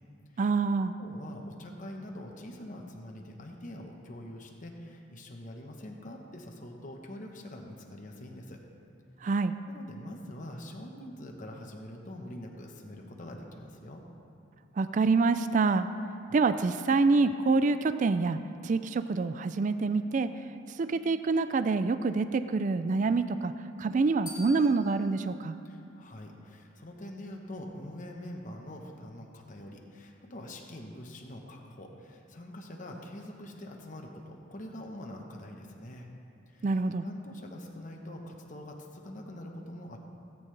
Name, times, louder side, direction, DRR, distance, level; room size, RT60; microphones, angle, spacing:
voice 1, 0.4-0.9 9.2-9.5 14.8-15.9 16.3-20.3 20.8-23.5 23.8-25.6 36.6-37.1, right 4 dB, 40° right, 11 dB, 0.3 m, -26 dB
voice 2, 1.0-8.6 9.7-14.0 25.6-36.1 36.5-40.0, left 1 dB, 40° left, 1 dB, 1.0 m, -44 dB
sound 1, 24.3-26.5, left 2 dB, 25° left, 2.3 m, -49 dB
18.0 x 8.6 x 3.3 m, 2.6 s
head